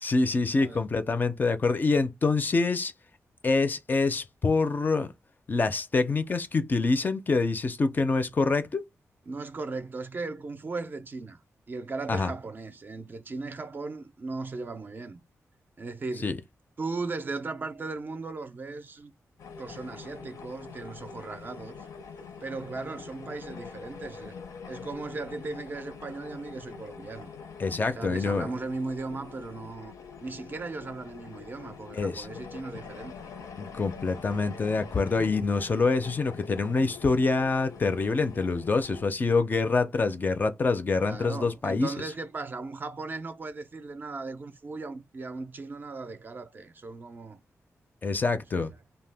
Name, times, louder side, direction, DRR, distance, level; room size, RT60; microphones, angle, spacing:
voice 1, 0.0-2.9 3.4-5.1 5.5-8.8 12.1-12.3 16.2-16.4 27.6-28.5 31.9-32.3 33.6-41.9 48.0-48.7, left 3 dB, 35° left, 0.4 m, -26 dB
voice 2, 9.3-11.4 11.7-15.2 15.8-16.4 16.8-19.1 19.6-21.8 22.4-24.4 24.7-27.3 28.0-29.9 30.2-33.1 41.0-47.4 48.5-48.8, right 3 dB, 40° right, 0.4 m, -37 dB
sound 1, 19.4-39.0, left 6 dB, 85° left, 0.6 m, -44 dB
2.7 x 2.1 x 3.3 m
wide cardioid pair, 125°, 5 cm